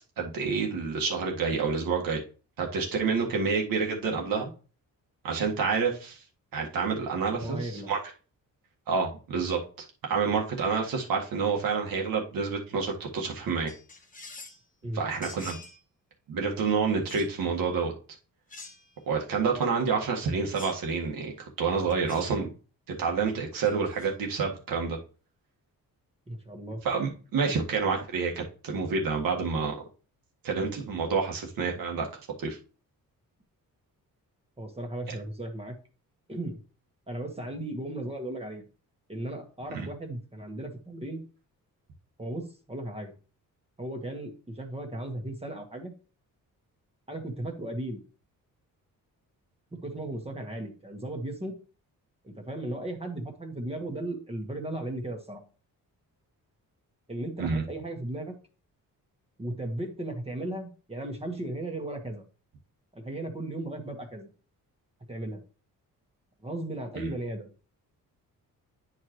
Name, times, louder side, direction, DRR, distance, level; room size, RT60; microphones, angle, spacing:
voice 1, 0.2-2.2 2.6-4.5 5.2-6.2 6.5-8.0 8.9-9.6 10.0-13.7 14.9-15.6 16.3-17.9 19.1-22.5 23.0-25.0 26.8-29.7 30.4-32.1 32.4-32.6 35.1-35.2 39.7-39.9 57.4-57.6 67.0-67.1, right 5 dB, 75° right, 0 dB, 1.7 m, -28 dB
voice 2, 7.3-7.9 14.8-15.0 26.3-26.8 34.6-35.7 36.3-36.6 37.1-38.6 39.1-41.2 42.2-43.1 43.8-45.9 47.1-48.0 49.7-51.5 52.2-55.4 57.1-58.3 59.4-62.2 62.9-64.3 65.1-65.4 66.4-67.5, right 1 dB, 15° right, 3 dB, 1.4 m, -36 dB
sound 1, 13.7-14.6 15.2-15.8 17.1-17.3 18.5-19.0 20.5-20.9 21.9-22.3 23.6-24.1, left 3 dB, 25° left, 1.2 m, -46 dB
9.6 x 4.7 x 3.1 m, 0.37 s
cardioid pair, 120°, 34 cm